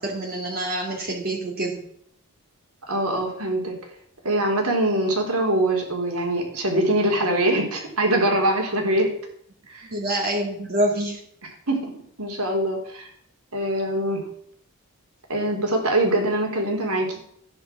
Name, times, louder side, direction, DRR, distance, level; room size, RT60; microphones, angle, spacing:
voice 1, 0.0-1.8 9.8-11.2, right 1 dB, 45° right, -2 dB, 2.6 m, -26 dB
voice 2, 2.9-3.7 4.2-9.1 9.7-9.9 11.7-13.1 13.5-14.2 15.3-17.2, right 1 dB, 75° right, 2 dB, 4.1 m, -23 dB
13.0 x 10.0 x 6.2 m, 0.67 s
head